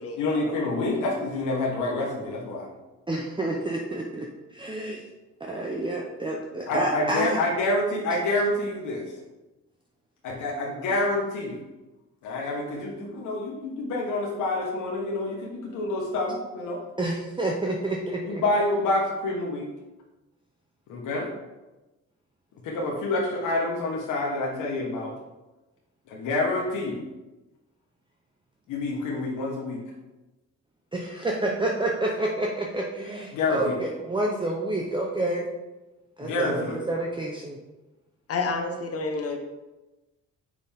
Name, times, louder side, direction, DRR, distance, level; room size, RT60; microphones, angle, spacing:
voice 1, 0.2-2.7 6.7-9.1 10.2-11.6 12.2-16.8 18.2-19.7 20.9-21.3 22.6-25.2 26.1-27.0 28.7-29.8 33.3-33.8 36.2-36.8, left 2 dB, 90° left, -2 dB, 1.4 m, -27 dB
voice 2, 3.1-5.0 5.4-7.4 17.0-18.4 30.9-35.5 36.2-37.6, right 1 dB, 15° right, -1 dB, 0.8 m, -29 dB
voice 3, 38.3-39.4, left 3 dB, 50° left, 4 dB, 1.3 m, -29 dB
6.8 x 5.9 x 3.6 m, 1.1 s
cardioid pair, 90°, 30 cm